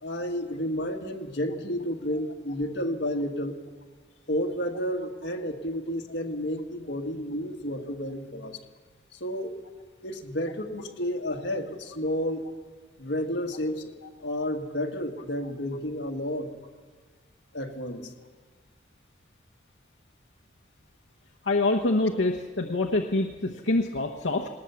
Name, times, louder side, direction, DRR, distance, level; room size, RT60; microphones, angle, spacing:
voice 1, 0.0-3.6 4.3-8.6 9.1-9.6 10.0-12.4 13.0-13.9 14.2-16.5 17.5-18.1, equal, 70° left, 1 dB, 1.9 m, -31 dB
voice 2, 21.4-24.5, left 2 dB, 85° left, 1 dB, 1.1 m, -25 dB
19.5 x 19.0 x 7.1 m, 1.4 s
head